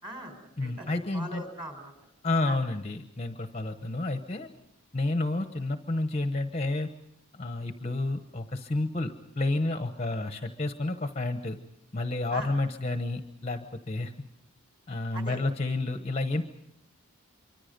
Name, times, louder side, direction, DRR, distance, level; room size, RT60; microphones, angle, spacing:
voice 1, 0.0-0.3 0.6-0.9 1.1-1.9 2.4-2.6 12.3-12.5 15.1-15.4, right 1 dB, 20° right, 5 dB, 4.3 m, -40 dB
voice 2, 0.6-1.4 2.2-4.5 4.9-6.9 7.4-11.6 11.9-14.1 14.9-16.4, left 2 dB, 30° left, 7 dB, 0.9 m, -30 dB
27.0 x 24.5 x 5.3 m, 0.73 s
head